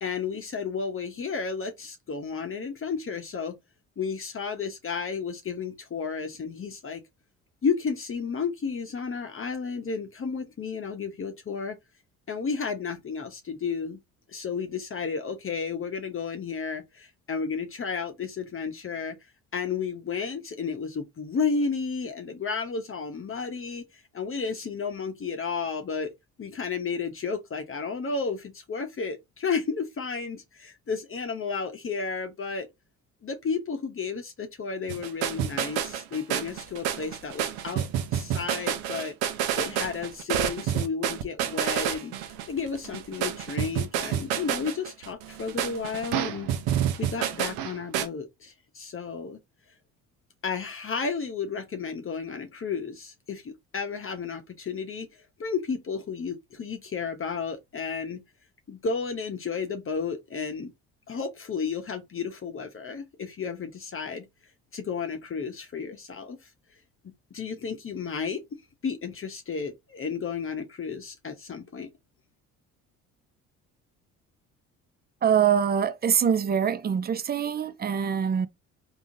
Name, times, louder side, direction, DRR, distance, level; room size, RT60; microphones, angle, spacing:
voice 1, 0.0-3.6 4.0-7.0 7.6-11.8 12.3-14.0 14.3-19.2 19.5-23.8 24.1-26.1 26.4-32.7 33.2-39.1 39.6-42.1 42.5-46.5 47.0-49.4 50.4-55.1 55.4-58.2 58.7-60.7 61.1-64.3 64.7-66.4 67.0-68.4 68.8-71.9, left 5 dB, 35° left, 0.9 m, -32 dB
sound 1, 34.9-48.1, right 10 dB, 70° right, 0.7 m, -29 dB
voice 2, 75.2-78.5, right 8 dB, 25° right, 0.4 m, -24 dB
3.6 x 2.7 x 2.6 m
hypercardioid pair, 60°, 38 cm